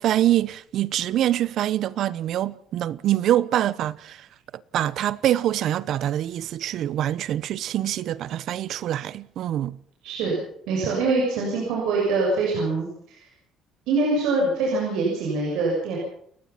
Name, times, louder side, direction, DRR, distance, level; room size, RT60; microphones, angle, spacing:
voice 1, 0.0-4.3 4.7-9.8, right 12 dB, 60° right, 0.9 m, -25 dB
voice 2, 10.0-10.4 10.7-13.2 13.9-16.0, right 3 dB, 90° right, 7.2 m, -24 dB
30.0 x 15.5 x 5.8 m
cardioid pair, 145°, 0 cm